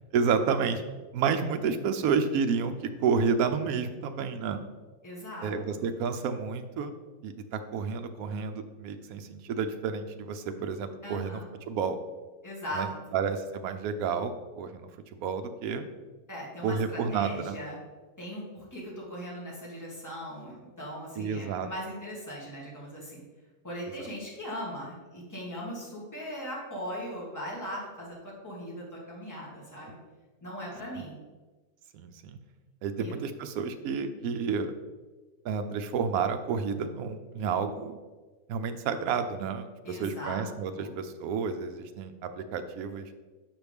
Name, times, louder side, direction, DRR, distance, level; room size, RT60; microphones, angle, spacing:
voice 1, 0.1-0.8 1.1-2.7 3.0-4.6 5.4-6.9 7.2-12.0 12.7-12.9 13.1-15.9 16.6-17.6 21.2-21.7 24.0-24.1 30.9-31.1 31.9-32.4 32.8-34.7 35.4-38.0 38.5-43.1, right 5 dB, 80° right, 8 dB, 1.0 m, -30 dB
voice 2, 5.0-5.9 11.0-11.5 12.4-13.2 16.3-17.8 18.2-23.2 23.6-28.2 28.4-30.0 30.4-31.1 33.0-33.2 39.8-40.5 40.7-41.0, equal, 10° left, -5 dB, 1.7 m, -39 dB
6.0 x 5.6 x 3.5 m, 1.3 s
omnidirectional pair, 1.5 m